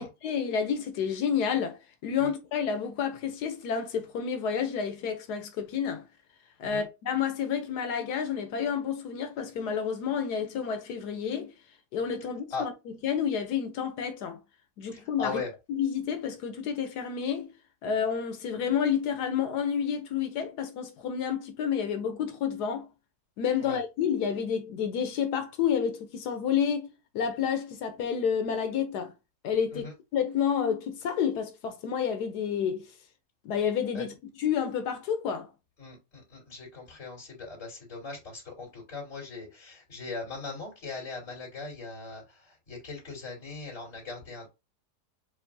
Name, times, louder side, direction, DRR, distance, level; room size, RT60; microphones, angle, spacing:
voice 1, 0.0-6.1 6.6-11.5 11.9-14.4 14.8-15.4 15.7-17.5 17.8-22.9 23.4-29.1 29.4-32.9 33.4-35.5, left 7 dB, 80° left, 1.3 m, -30 dB
voice 2, 14.9-15.5 23.6-23.8 29.7-29.9 33.9-34.0 35.8-44.5, left 4 dB, 50° left, 3.2 m, -39 dB
7.5 x 2.6 x 2.6 m
omnidirectional pair, 1.7 m